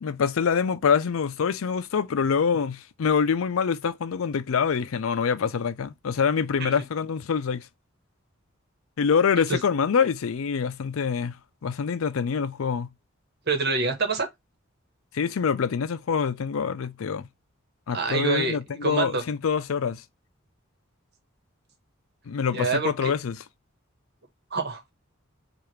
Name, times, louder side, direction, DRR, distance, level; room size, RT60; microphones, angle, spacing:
voice 1, 0.0-7.7 9.0-11.4 11.6-12.9 15.1-17.3 17.9-20.0 22.3-23.4, left 6 dB, 90° left, 0.4 m, -25 dB
voice 2, 13.5-14.3 17.9-19.2 22.5-23.1 24.5-24.8, right 4 dB, 55° right, 1.1 m, -26 dB
4.8 x 2.5 x 3.1 m
head